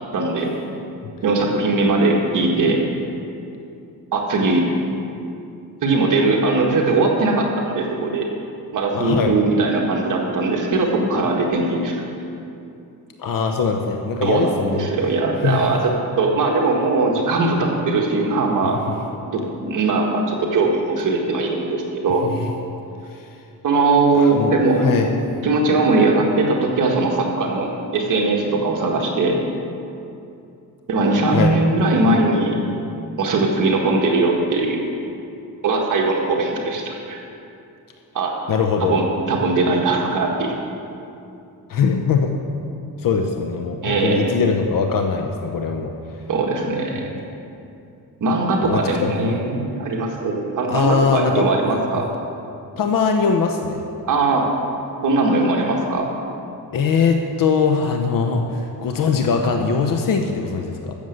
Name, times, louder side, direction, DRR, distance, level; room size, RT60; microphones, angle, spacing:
voice 1, 0.1-0.5 1.2-2.8 4.1-4.7 5.8-8.3 8.7-12.0 14.2-18.8 19.3-22.3 23.6-24.8 25.4-29.4 30.9-32.6 33.2-34.9 35.6-37.2 38.2-38.4 38.8-40.5 43.8-44.3 46.3-47.0 48.2-52.1 54.1-54.5 55.0-56.1, right 3 dB, 55° right, 0 dB, 1.6 m, -20 dB
voice 2, 8.9-9.3 13.2-14.9 15.4-15.8 22.2-22.4 23.1-23.3 24.1-24.5 24.8-25.1 31.3-31.5 38.5-39.0 41.7-42.3 43.0-45.9 48.6-49.3 50.7-51.8 52.8-53.8 56.7-60.9, left 5 dB, 60° left, 4 dB, 0.9 m, -21 dB
13.0 x 7.1 x 7.9 m, 2.7 s
cardioid pair, 150°, 38 cm